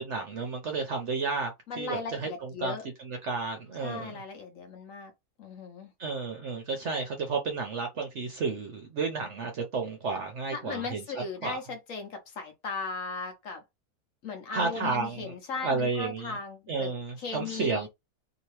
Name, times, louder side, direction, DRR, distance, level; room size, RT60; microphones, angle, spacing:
voice 1, 0.0-1.5 1.8-4.2 6.0-11.0 11.4-11.6 14.5-15.4 15.6-16.4 16.7-17.9, right 4 dB, 60° right, 0.8 m, -32 dB
voice 2, 1.7-2.9 3.8-5.1 5.4-5.9 10.5-13.6 14.2-17.9, left 4 dB, 60° left, 1.1 m, -37 dB
2.9 x 2.8 x 3.1 m
omnidirectional pair, 1.7 m